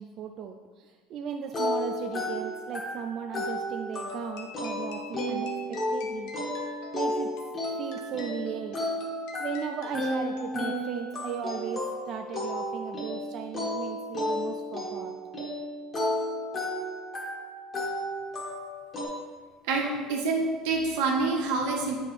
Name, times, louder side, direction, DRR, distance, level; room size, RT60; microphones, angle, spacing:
voice 1, 0.0-6.3 6.9-7.3 7.8-8.8 9.4-15.1, right 7 dB, 35° right, 4 dB, 0.3 m, -37 dB
sound 1, 1.5-19.1, left 1 dB, 20° left, 1.5 m, -33 dB
sound 2, 4.1-10.9, left 3 dB, 65° left, 0.8 m, -47 dB
voice 2, 19.6-22.0, right 3 dB, 80° right, 0 dB, 1.3 m, -27 dB
8.4 x 5.2 x 3.3 m, 1.4 s
cardioid pair, 175°, 0 cm